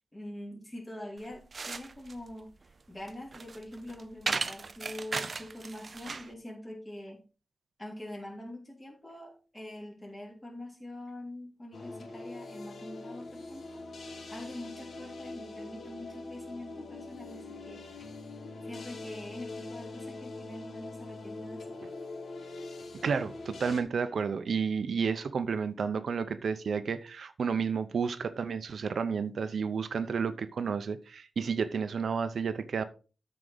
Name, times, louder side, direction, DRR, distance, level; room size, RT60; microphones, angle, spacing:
voice 1, 0.1-2.5 2.9-7.2 7.8-13.8 14.3-17.8 18.5-21.8, left 1 dB, 20° left, 3.4 m, -44 dB
sound 1, 1.2-6.3, right 4 dB, 45° right, 0.5 m, -37 dB
sound 2, 11.7-23.8, left 2 dB, 80° left, 1.5 m, -43 dB
voice 2, 23.0-32.8, right 6 dB, 80° right, 0.7 m, -31 dB
13.0 x 4.8 x 3.9 m
wide cardioid pair, 165°, 0 cm